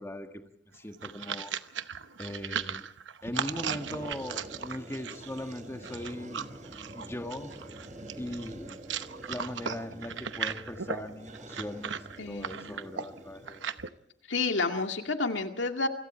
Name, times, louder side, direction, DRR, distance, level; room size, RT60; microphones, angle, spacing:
voice 1, 0.0-1.5 2.2-2.9 3.2-6.4 6.9-7.6 8.2-8.8 9.3-11.9 12.3-13.6, left 1 dB, 15° left, 5 dB, 1.7 m, -39 dB
sound 1, 0.7-13.9, right 7 dB, 80° right, 0.9 m, -37 dB
sound 2, 3.5-14.0, right 1 dB, 45° right, 4.9 m, -47 dB
voice 2, 12.2-12.8 14.3-15.9, left 3 dB, 80° left, 4 dB, 2.2 m, -30 dB
28.0 x 25.5 x 4.5 m, 0.68 s
head